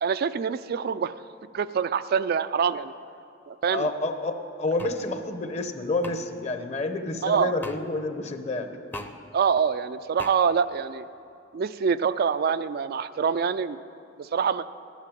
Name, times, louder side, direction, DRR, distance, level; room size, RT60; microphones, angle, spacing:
voice 1, 0.0-1.1 1.5-2.9 3.5-3.9 7.2-7.5 9.3-11.1 11.5-13.8 14.2-14.6, right 6 dB, 50° right, 12 dB, 0.3 m, -25 dB
voice 2, 3.7-8.7, left 2 dB, 35° left, 7 dB, 0.9 m, -29 dB
sound 1, 4.8-5.0 6.0-6.2 7.6-7.8 8.9-9.1 10.2-10.3, left 2 dB, 10° left, 0.6 m, -37 dB
11.5 x 10.5 x 9.0 m, 2.8 s
head